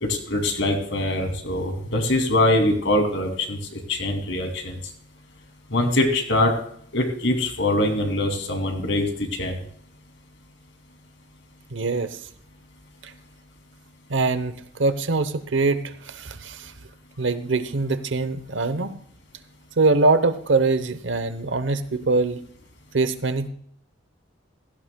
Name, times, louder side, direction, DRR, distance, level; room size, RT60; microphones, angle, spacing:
voice 1, 0.0-4.8 5.7-6.5 6.9-9.6, left 1 dB, 75° left, 3 dB, 2.6 m, -23 dB
voice 2, 11.7-12.2 13.0-13.1 14.1-16.7 17.2-19.0 19.8-22.4 22.9-23.5, right 3 dB, 75° right, 12 dB, 0.9 m, -23 dB
16.5 x 15.0 x 2.3 m, 0.64 s
head